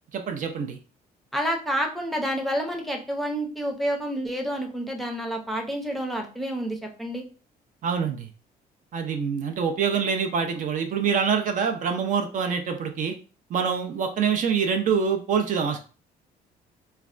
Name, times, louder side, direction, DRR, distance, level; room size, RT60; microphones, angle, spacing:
voice 1, 0.1-0.8 7.8-8.3 8.9-13.1 13.5-15.8, right 6 dB, 50° right, 5 dB, 0.4 m, -25 dB
voice 2, 1.3-7.2, equal, ahead, 1 dB, 0.6 m, -29 dB
3.2 x 2.1 x 2.4 m, 0.37 s
cardioid pair, 110°, 17 cm